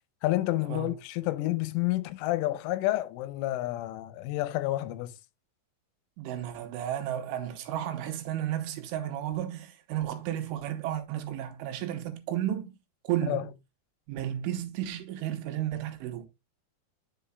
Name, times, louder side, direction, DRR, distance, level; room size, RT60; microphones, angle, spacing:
voice 1, 0.2-5.2 13.2-13.5, left 16 dB, 85° left, 3.1 m, -29 dB
voice 2, 6.2-12.7 13.1-13.4 14.1-16.3, right 11 dB, 90° right, 3.5 m, -33 dB
9.4 x 6.9 x 2.2 m
omnidirectional pair, 5.6 m